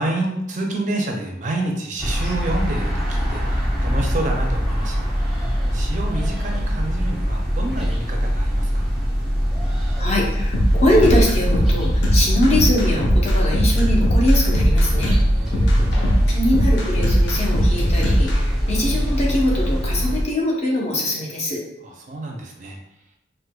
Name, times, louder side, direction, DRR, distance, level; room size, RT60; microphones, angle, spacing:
voice 1, 0.0-5.1 5.7-9.0 15.3-15.9 21.8-22.8, right 2 dB, 40° right, 1 dB, 0.4 m, -28 dB
sound 1, 2.0-20.2, equal, 5° right, 0.6 m, -22 dB
voice 2, 10.0-15.2 16.3-21.6, left 1 dB, 35° left, -3 dB, 0.7 m, -22 dB
sound 2, 10.5-18.4, equal, 70° left, 0.7 m, -20 dB
4.4 x 2.1 x 2.2 m, 0.88 s
head